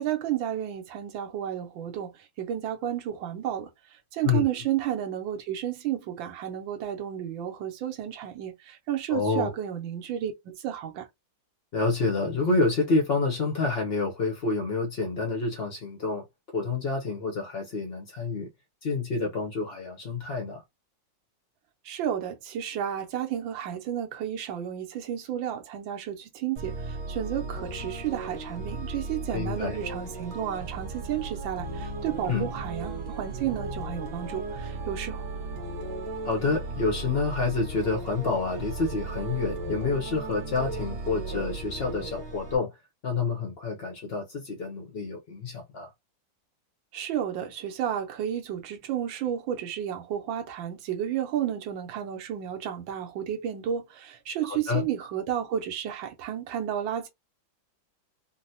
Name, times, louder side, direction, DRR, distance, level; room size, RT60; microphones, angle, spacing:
voice 1, 0.0-2.1 2.4-11.1 21.8-35.3 46.9-57.1, right 10 dB, 80° right, 1.5 m, -32 dB
voice 2, 9.1-9.5 11.7-16.2 16.5-18.5 18.8-20.6 29.3-29.8 32.2-32.5 36.2-42.8 43.0-45.9 54.4-54.9, left 3 dB, 80° left, 0.5 m, -28 dB
sound 1, 26.6-42.6, right 2 dB, 65° right, 1.5 m, -36 dB
3.8 x 2.1 x 2.7 m
omnidirectional pair, 2.1 m